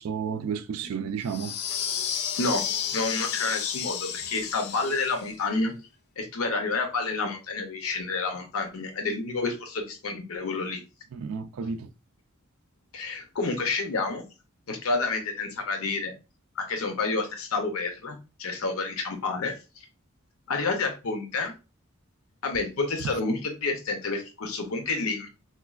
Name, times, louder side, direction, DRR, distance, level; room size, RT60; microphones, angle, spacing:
voice 1, 0.0-1.8 11.1-11.9 23.0-23.2, right 6 dB, 80° right, 0.3 m, -32 dB
sound 1, 1.3-5.3, left 8 dB, 50° left, 0.3 m, -32 dB
voice 2, 2.9-5.7 6.2-10.8 12.9-14.2 14.7-16.2 16.6-19.9 20.5-21.5 22.4-25.3, left 3 dB, 85° left, 0.6 m, -29 dB
4.3 x 2.3 x 2.3 m
head